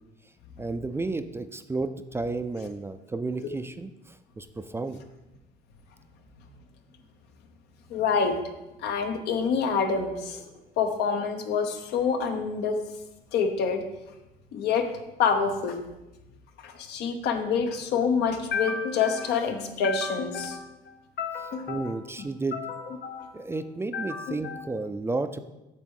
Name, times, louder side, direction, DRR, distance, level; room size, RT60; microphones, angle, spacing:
voice 1, 0.6-5.0 21.7-22.6 23.3-25.4, right 3 dB, 15° right, 10 dB, 0.3 m, -32 dB
voice 2, 7.9-8.4 8.8-10.4 10.8-12.8 13.3-13.8 14.5-14.9 15.2-15.8 16.6-20.7 21.2-21.9 22.5-23.3 23.9-24.6, left 5 dB, 80° left, 5 dB, 1.0 m, -27 dB
8.2 x 3.5 x 6.4 m, 0.98 s
cardioid pair, 110°, 17 cm